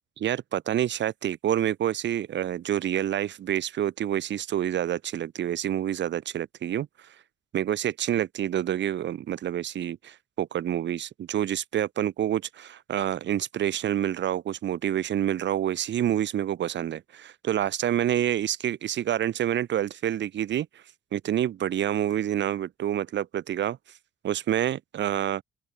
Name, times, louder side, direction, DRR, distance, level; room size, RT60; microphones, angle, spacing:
voice 1, 0.2-6.9 7.5-20.7 21.1-23.8 24.2-25.4, right 11 dB, 65° right, 1.6 m, -28 dB
open air
cardioid pair, 90°, 20 cm